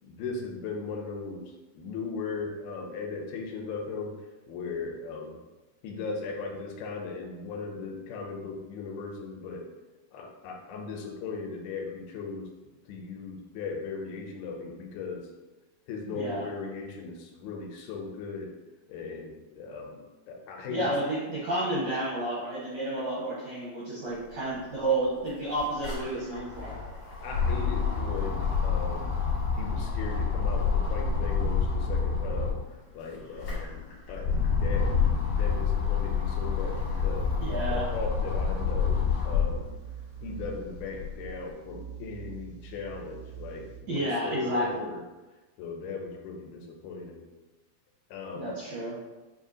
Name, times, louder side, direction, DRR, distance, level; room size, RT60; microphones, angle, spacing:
voice 1, 0.0-1.4 1.8-4.1 4.5-5.4 5.8-9.7 10.1-12.5 12.9-15.2 15.9-18.5 18.9-20.9 27.2-29.2 29.6-32.6 32.9-37.3 37.7-39.7 40.2-45.0 45.6-47.2 48.1-48.5, left 4 dB, 85° left, 1 dB, 2.5 m, -38 dB
voice 2, 16.1-16.5 20.7-26.8 37.4-37.9 43.9-45.0 48.3-49.0, right 1 dB, 75° right, -8 dB, 1.6 m, -31 dB
sound 1, 24.5-24.6 24.9-32.7 33.2-39.7 40.2-41.3, left 5 dB, 65° left, 1.1 m, -28 dB
sound 2, 36.6-43.8, right 8 dB, 90° right, 2.5 m, -44 dB
7.3 x 2.7 x 2.7 m, 1.1 s
omnidirectional pair, 4.4 m